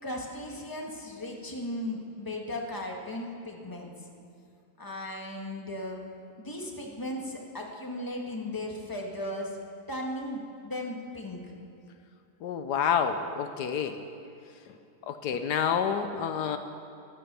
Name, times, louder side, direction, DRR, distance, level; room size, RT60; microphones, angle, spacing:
voice 1, 0.0-3.9 4.8-6.0 6.4-9.6 9.9-11.5, left 1 dB, 15° left, -1 dB, 1.8 m, -36 dB
voice 2, 12.4-14.0 14.7-14.8 15.0-16.6, left 7 dB, 80° left, 8 dB, 1.3 m, -28 dB
14.5 x 12.5 x 6.9 m, 2.5 s
omnidirectional pair, 1.7 m